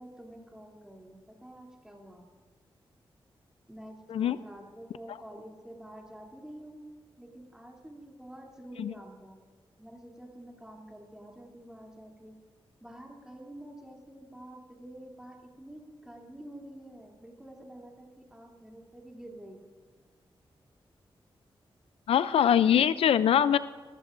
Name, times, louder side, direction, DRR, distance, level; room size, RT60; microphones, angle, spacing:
voice 1, 0.0-2.3 3.7-6.8 7.2-9.4 9.8-12.3 12.8-19.6, right 1 dB, 5° right, -1 dB, 2.8 m, -48 dB
voice 2, 22.1-23.6, left 9 dB, 90° left, 15 dB, 0.4 m, -23 dB
21.0 x 12.5 x 2.5 m, 1.5 s
cardioid pair, 75°, 10 cm